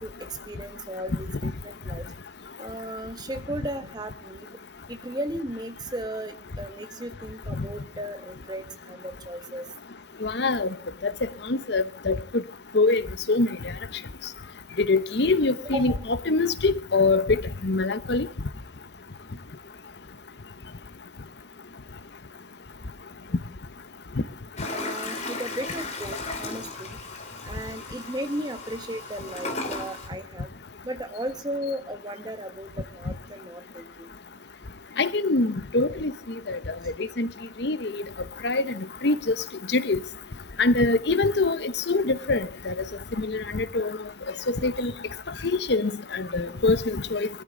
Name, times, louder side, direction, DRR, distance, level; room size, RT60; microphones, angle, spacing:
voice 1, 0.0-2.0 2.6-4.5 4.9-9.7 15.6-16.0 24.6-27.0 27.4-30.5 30.8-34.1, equal, 20° right, 1.3 m, -35 dB
voice 2, 10.2-10.7 11.0-11.1 11.5-12.2 12.7-13.5 14.8-18.3 35.0-36.1 36.5-36.6 37.2-37.3 37.6-38.0 38.4-38.6 39.0-39.3 39.7-40.0 40.6-42.7 43.2-43.9 44.5-44.9 45.4-47.3, left 3 dB, 65° left, 0.8 m, -24 dB
Toilet flush, 24.6-30.1, left 3 dB, 35° left, 2.9 m, -35 dB
22.5 x 13.5 x 3.7 m
head